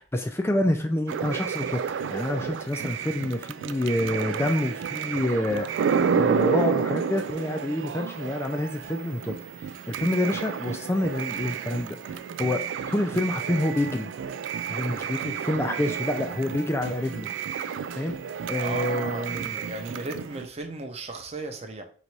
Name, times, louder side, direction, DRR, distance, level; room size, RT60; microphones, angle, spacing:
voice 1, 0.0-5.8 6.1-12.6 12.9-14.1 14.7-17.3 17.9-18.1 18.5-19.6, left 1 dB, 15° left, 0.4 m, -28 dB
sound 1, 1.1-20.5, right 6 dB, 75° right, 0.3 m, -31 dB
voice 2, 18.6-19.3 19.7-21.8, right 2 dB, 35° right, 0.7 m, -35 dB
4.1 x 2.6 x 4.6 m
head